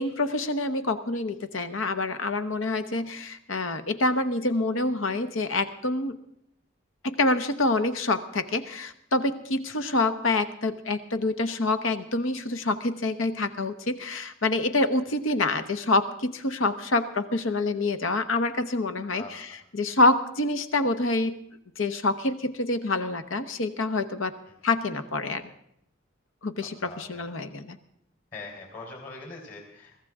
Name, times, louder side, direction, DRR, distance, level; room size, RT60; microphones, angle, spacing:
voice 1, 0.0-6.2 7.0-21.4 21.8-24.3 24.6-25.5 26.4-27.8, left 2 dB, 80° left, 10 dB, 1.1 m, -27 dB
voice 2, 26.6-27.3 28.3-30.0, left 3 dB, 45° left, 1 dB, 3.9 m, -43 dB
23.0 x 14.5 x 3.7 m, 0.74 s
head